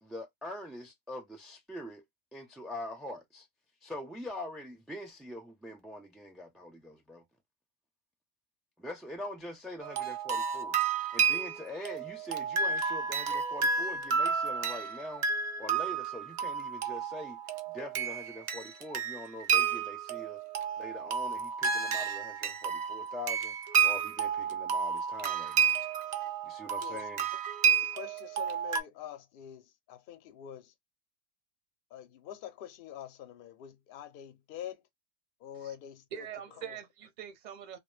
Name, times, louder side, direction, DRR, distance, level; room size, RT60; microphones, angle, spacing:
voice 1, 0.0-2.0 2.3-3.5 3.8-7.2 8.8-15.3 15.6-17.4 17.7-20.4 20.8-25.8 26.4-27.3, left 1 dB, ahead, 0.3 m, -43 dB
sound 1, 9.8-28.8, right 6 dB, 90° right, 0.3 m, -31 dB
voice 2, 27.9-30.7 31.9-34.8 35.4-36.3 36.7-36.8, left 10 dB, 60° left, 0.6 m, -45 dB
voice 3, 36.1-37.8, right 9 dB, 45° right, 0.7 m, -43 dB
2.2 x 2.1 x 3.1 m
omnidirectional pair, 1.3 m